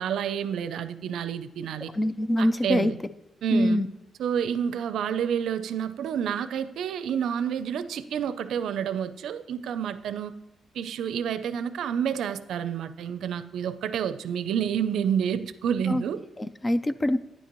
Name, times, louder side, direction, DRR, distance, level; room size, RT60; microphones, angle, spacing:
voice 1, 0.0-1.9 2.4-3.0 3.4-3.8 4.2-10.3 10.7-16.2, right 8 dB, 80° right, 0.5 m, -29 dB
voice 2, 1.9-2.9 3.5-3.9 15.9-16.0 16.4-17.2, left 1 dB, 20° left, 0.4 m, -24 dB
10.0 x 9.9 x 3.0 m
cardioid pair, 130°, 0 cm